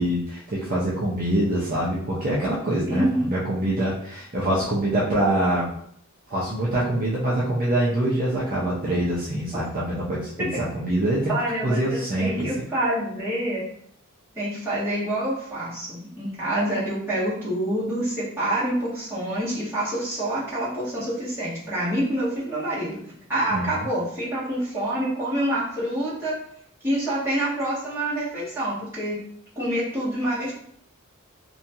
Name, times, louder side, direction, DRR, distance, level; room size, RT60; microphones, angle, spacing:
voice 1, 0.0-5.7 6.3-11.3 11.6-12.5 23.5-23.7, right 1 dB, 40° right, -6 dB, 0.5 m, -24 dB
voice 2, 2.9-3.3 10.4-10.5 11.3-13.6 14.4-23.0 23.3-26.4 26.8-29.2 29.6-30.5, right 1 dB, 10° right, -10 dB, 1.1 m, -27 dB
2.8 x 2.2 x 2.7 m, 0.68 s
head